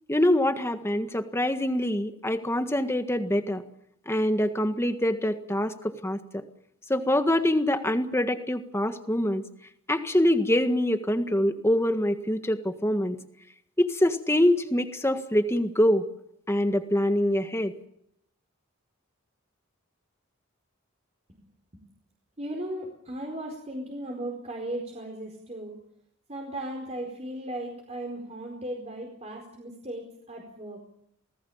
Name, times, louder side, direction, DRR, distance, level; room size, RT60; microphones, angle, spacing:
voice 1, 0.1-3.6 4.0-6.4 6.9-9.4 9.9-13.2 13.8-16.1 16.5-17.7, left 1 dB, 10° left, 8 dB, 1.6 m, -25 dB
voice 2, 22.4-25.8 26.3-30.8, right 1 dB, 35° right, 1 dB, 4.5 m, -36 dB
28.0 x 19.0 x 7.2 m, 0.74 s
head